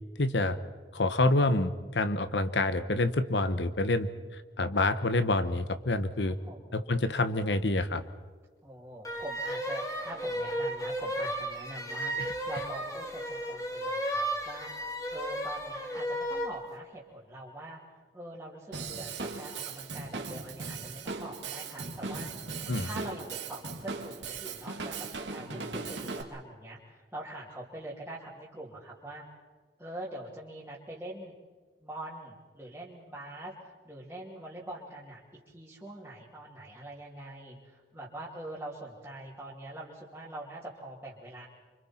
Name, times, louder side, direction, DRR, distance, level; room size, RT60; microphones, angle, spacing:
voice 1, 0.2-0.6 0.9-4.1 4.6-6.4 6.7-8.0 12.2-12.3 22.7-22.9, left 2 dB, 80° left, 11 dB, 1.1 m, -27 dB
voice 2, 6.2-6.8 8.6-29.2 29.8-31.3 31.8-35.2 35.5-41.5, right 1 dB, 10° right, -9 dB, 2.9 m, -44 dB
sound 1, 9.0-16.6, equal, 20° left, 2.5 m, -34 dB
Drum kit / Drum, 18.7-26.2, right 4 dB, 90° right, 2.2 m, -38 dB
28.5 x 25.5 x 4.5 m, 1.4 s
head